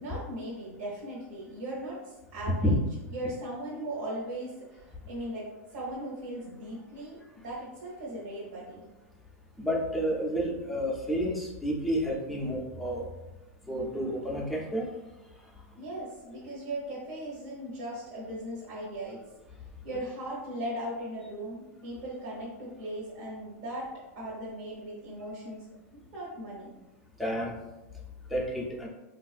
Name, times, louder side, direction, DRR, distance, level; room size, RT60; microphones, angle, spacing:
voice 1, 0.0-2.7 3.1-8.8 15.8-19.2 19.8-25.6 26.1-26.7, right 1 dB, 65° right, -7 dB, 0.9 m, -38 dB
voice 2, 9.6-13.1 13.7-14.9 27.2-27.5 28.3-28.9, equal, ahead, -4 dB, 0.4 m, -30 dB
3.4 x 2.4 x 2.4 m, 1.1 s
supercardioid pair, 160°, 8 cm